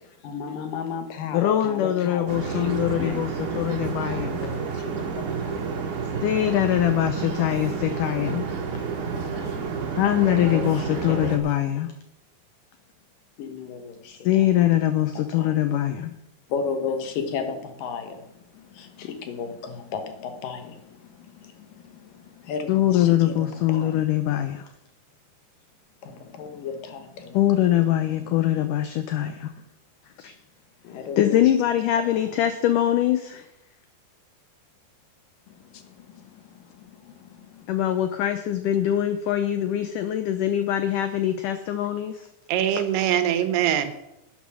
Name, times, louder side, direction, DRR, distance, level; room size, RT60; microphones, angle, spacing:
voice 1, 0.2-3.2 4.3-4.8 5.2-5.6 8.2-8.3 9.0-9.6 10.4-11.3 13.4-14.2 15.3-15.6 16.5-24.0 26.0-27.4 30.8-31.3 35.6-37.7, left 5 dB, 65° left, 7 dB, 2.6 m, -35 dB
voice 2, 1.3-4.4 6.2-8.5 10.0-11.9 14.3-16.1 22.7-24.7 27.3-29.5 30.2-30.3 31.2-33.5 37.7-42.3, left 12 dB, 85° left, 9 dB, 1.8 m, -23 dB
sound 1, 2.3-11.4, right 5 dB, 60° right, 3.0 m, -30 dB
voice 3, 42.5-43.9, right 10 dB, 90° right, 10 dB, 3.1 m, -22 dB
11.5 x 9.2 x 6.3 m, 0.85 s
omnidirectional pair, 4.5 m